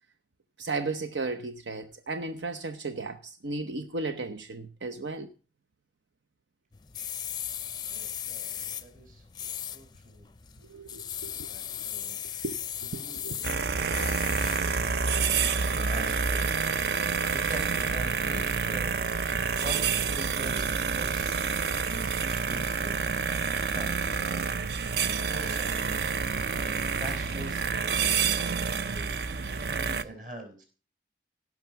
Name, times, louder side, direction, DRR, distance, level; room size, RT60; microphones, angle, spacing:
voice 1, 0.6-5.3 10.7-11.8 12.4-12.6 12.9-13.4, right 3 dB, 85° right, 0.9 m, -35 dB
sound 1, 6.7-14.8, left 9 dB, 25° left, 0.5 m, -38 dB
voice 2, 7.9-9.2 9.7-10.2 11.5-12.2 12.9-14.7 15.6-16.8 17.3-19.1 19.6-23.0 23.5-24.5 25.2-25.8 26.5-28.4 28.8-30.6, right 1 dB, 45° right, 4.9 m, -44 dB
sound 2, 13.4-30.0, right 5 dB, 60° right, 0.6 m, -28 dB
16.5 x 6.1 x 5.8 m
head